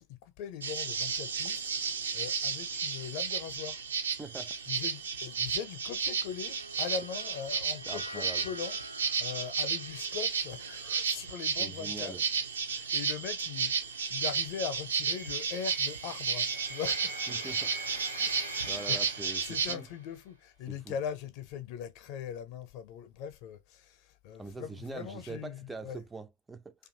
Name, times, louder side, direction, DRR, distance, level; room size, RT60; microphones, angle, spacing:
voice 1, 0.0-1.6 2.1-3.8 4.7-12.1 12.7-17.6 17.9-19.0 19.4-26.0, left 8 dB, 45° left, 0.6 m, -41 dB
sound 1, 0.6-19.7, right 6 dB, 70° right, 0.5 m, -33 dB
voice 2, 4.2-4.8 7.9-8.4 11.6-12.2 17.3-17.7 18.7-19.9 20.7-21.0 24.4-26.8, right 3 dB, 10° right, 0.3 m, -43 dB
sound 2, 6.1-12.5, equal, 90° left, 0.3 m, -49 dB
sound 3, 15.1-20.1, right 2 dB, 85° right, 1.1 m, -44 dB
2.5 x 2.4 x 2.9 m
figure-of-eight pair, 90°, 0 cm